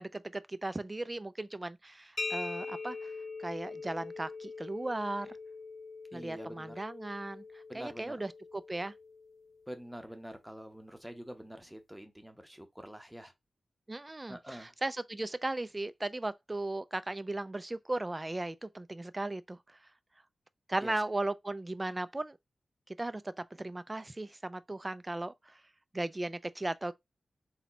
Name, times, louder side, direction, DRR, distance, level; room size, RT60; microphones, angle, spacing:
voice 1, 0.0-3.1 3.4-5.3 6.1-8.9 13.9-19.8 20.7-22.4 23.0-25.6 25.9-26.9, right 2 dB, 20° right, 0.4 m, -37 dB
sound 1, 2.2-9.7, left 3 dB, 50° left, 0.7 m, -43 dB
voice 2, 6.1-6.8 7.7-8.2 9.7-13.3 14.3-14.7 20.8-20.9, equal, 5° right, 0.9 m, -46 dB
4.2 x 2.2 x 4.2 m
wide cardioid pair, 100°, 0 cm